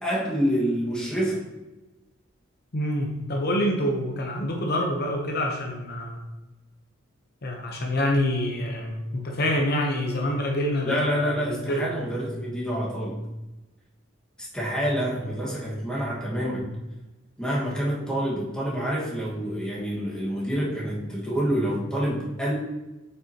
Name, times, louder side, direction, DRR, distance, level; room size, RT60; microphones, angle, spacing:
voice 1, 0.0-1.5 10.8-13.2 14.4-16.7 17.4-22.5, equal, 5° left, -6 dB, 1.6 m, -27 dB
voice 2, 2.7-6.2 7.4-11.0 11.7-11.8, left 1 dB, 50° left, 0 dB, 0.8 m, -26 dB
7.7 x 5.5 x 2.9 m, 1.1 s
head